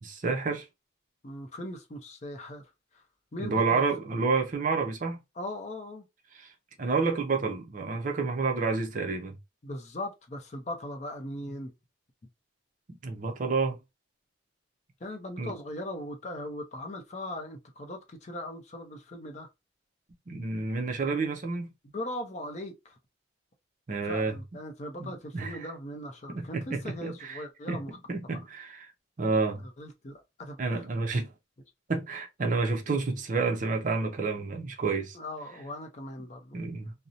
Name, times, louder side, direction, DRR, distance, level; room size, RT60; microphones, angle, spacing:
voice 1, 0.0-0.7 3.4-5.2 6.3-6.5 6.8-9.4 12.9-13.8 15.4-15.5 20.3-21.7 23.9-24.3 25.0-25.6 26.3-27.4 27.7-27.8 28.1-28.9 29.2-29.6 30.6-31.3 31.9-35.2 36.5-36.9, right 4 dB, 40° right, 0.5 m, -29 dB
voice 2, 1.2-2.6 2.9-3.0 3.3-3.8 5.4-6.0 9.6-11.7 15.0-19.5 21.9-23.0 24.0-28.0 28.3-28.4 29.8-30.9 35.1-36.6, left 1 dB, 35° left, 0.5 m, -39 dB
2.6 x 2.0 x 2.6 m
head